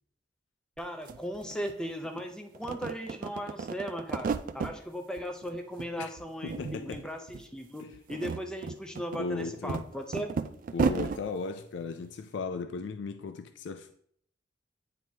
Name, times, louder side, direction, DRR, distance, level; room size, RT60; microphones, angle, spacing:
voice 1, 0.8-10.4, equal, 5° left, 0.5 m, -37 dB
sound 1, 0.8-0.9 1.1-2.2 2.5-4.8 5.2-5.9 6.2-7.0 7.3-7.4 7.9-11.2, right 5 dB, 45° right, 0.3 m, -33 dB
voice 2, 6.4-7.0 7.8-7.9 9.1-9.8 10.7-13.9, left 4 dB, 70° left, 0.4 m, -36 dB
9.1 x 4.6 x 2.8 m
head